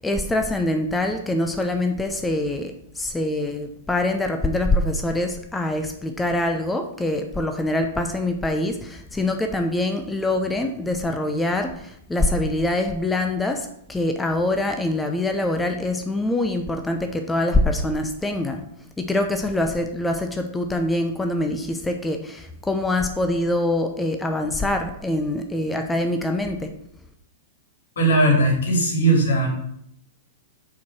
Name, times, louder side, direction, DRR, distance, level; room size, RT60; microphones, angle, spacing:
voice 1, 0.0-18.6 19.0-26.7, left 1 dB, 10° left, 5 dB, 0.7 m, -24 dB
voice 2, 28.0-29.5, right 2 dB, 75° left, 1 dB, 2.7 m, -18 dB
5.7 x 4.6 x 6.0 m, 0.72 s
hypercardioid pair, 110°, 0 cm